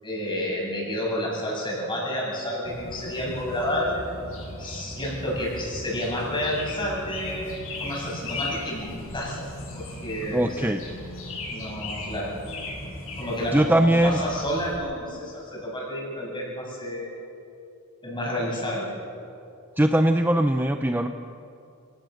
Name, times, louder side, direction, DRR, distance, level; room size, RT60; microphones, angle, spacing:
voice 1, 0.0-4.0 4.6-7.5 7.8-9.5 9.7-10.7 11.5-12.3 13.2-17.1 18.0-18.9, equal, 20° left, -4 dB, 7.9 m, -30 dB
sound 1, 2.6-14.8, left 2 dB, 70° left, 7.6 m, -37 dB
voice 2, 10.3-10.9 13.5-14.2 19.8-21.1, right 1 dB, 10° right, 6 dB, 0.7 m, -21 dB
29.0 x 18.5 x 6.6 m, 2.6 s
head